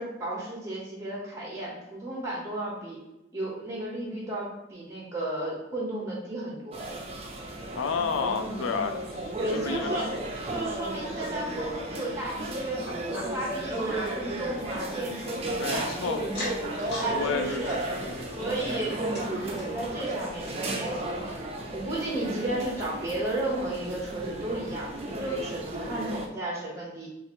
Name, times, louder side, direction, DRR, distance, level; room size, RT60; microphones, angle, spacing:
voice 1, 0.0-3.0 3.3-6.8 9.4-10.1 10.5-16.3 17.0-17.8 18.3-21.3 21.7-27.1, right 1 dB, 15° right, -4 dB, 0.8 m, -33 dB
sound 1, 6.7-26.3, right 1 dB, 30° right, 0.5 m, -34 dB
voice 2, 7.8-9.9 15.6-16.2 17.1-18.4, left 5 dB, 90° left, 7 dB, 0.4 m, -32 dB
sound 2, 12.9-15.8 16.2-17.1 17.4-19.8 20.3-20.4 20.7-20.8 21.4-21.5, left 1 dB, 55° left, 1.4 m, -42 dB
2.8 x 2.5 x 4.3 m, 0.93 s
head